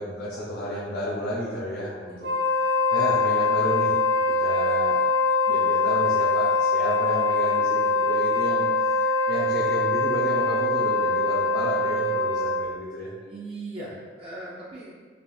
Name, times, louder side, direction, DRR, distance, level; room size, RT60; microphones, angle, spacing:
voice 1, 0.0-2.3 2.6-4.0 4.4-5.0 5.5-13.1, equal, 65° left, -8 dB, 0.6 m, -32 dB
Wind instrument woodwind instrument, 2.2-12.7, left 3 dB, 65° right, 0.8 m, -23 dB
voice 2, 13.2-15.0, right 2 dB, 35° right, -7 dB, 0.4 m, -38 dB
3.3 x 2.3 x 2.6 m, 1.5 s
head